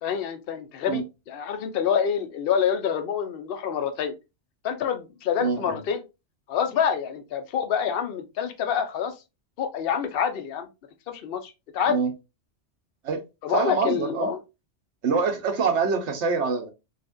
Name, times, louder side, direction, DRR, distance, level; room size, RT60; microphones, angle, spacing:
voice 1, 0.0-4.1 4.6-6.0 6.5-9.1 9.6-10.7 11.1-12.0 13.4-14.4, left 7 dB, 60° left, 0.8 m, -27 dB
voice 2, 5.4-5.8 11.9-12.1 13.0-13.2 13.5-14.3 15.0-16.7, right 5 dB, 85° right, 1.2 m, -25 dB
4.0 x 2.5 x 2.5 m
omnidirectional pair, 1.2 m